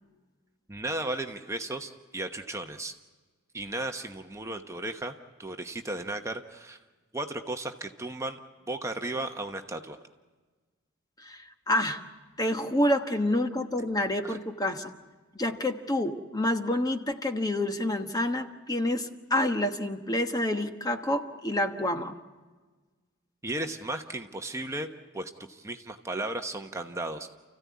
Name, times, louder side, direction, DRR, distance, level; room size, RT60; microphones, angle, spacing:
voice 1, 0.7-2.9 3.5-6.8 7.1-8.4 8.7-10.0 14.2-14.4 23.4-24.9 25.1-27.3, right 2 dB, 15° right, 5 dB, 1.0 m, -35 dB
voice 2, 11.2-12.0 12.4-14.9 15.3-22.2, left 1 dB, 20° left, 6 dB, 1.2 m, -28 dB
29.5 x 15.5 x 9.5 m, 1.3 s
head